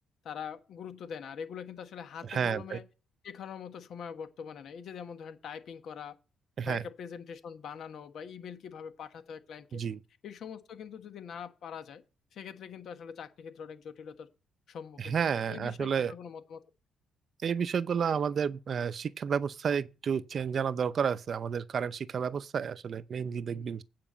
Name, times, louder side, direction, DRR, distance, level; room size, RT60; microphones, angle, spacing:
voice 1, 0.2-2.8 3.2-6.1 6.7-9.8 10.2-12.0 12.3-14.3 14.7-15.2 15.5-16.6 23.5-23.7, left 7 dB, 70° left, 1.3 m, -43 dB
voice 2, 2.2-2.8 6.6-6.8 9.7-10.0 15.0-16.1 17.4-23.8, right 7 dB, 50° right, 0.5 m, -31 dB
9.0 x 4.8 x 7.4 m
cardioid pair, 90°, 0 cm